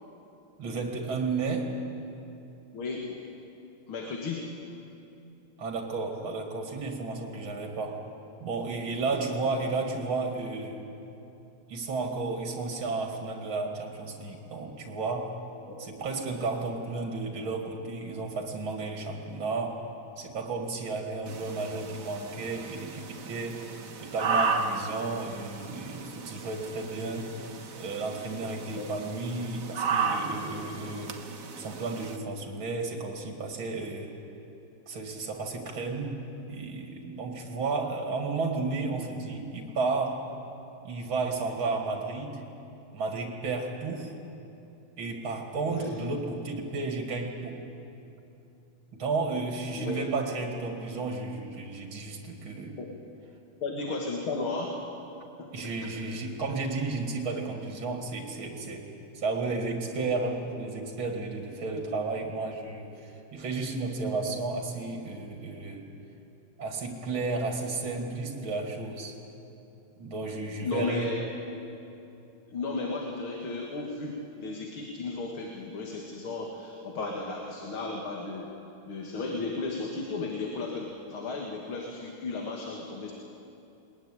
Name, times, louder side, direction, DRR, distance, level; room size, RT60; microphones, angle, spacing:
voice 1, 0.6-1.7 5.6-8.0 8.4-10.8 11.7-15.3 15.8-19.8 20.2-23.7 24.0-27.3 27.7-31.2 31.6-34.1 34.9-36.2 36.5-40.2 40.8-42.4 42.9-44.1 45.0-47.6 49.0-52.8 55.5-58.9 59.1-65.9 66.6-69.2 70.0-71.1, right 3 dB, 70° right, 2 dB, 3.1 m, -33 dB
voice 2, 2.7-3.2 3.9-4.5 9.1-9.3 15.7-15.8 28.7-28.9 45.7-46.0 49.8-50.0 52.8-52.9 53.6-54.9 55.4-56.2 70.6-71.3 72.5-78.5 78.9-83.1, left 3 dB, 75° left, 1 dB, 2.7 m, -34 dB
sound 1, 21.3-32.2, right 5 dB, 45° right, 1.4 m, -34 dB
21.5 x 19.5 x 10.0 m, 2.8 s
omnidirectional pair, 2.3 m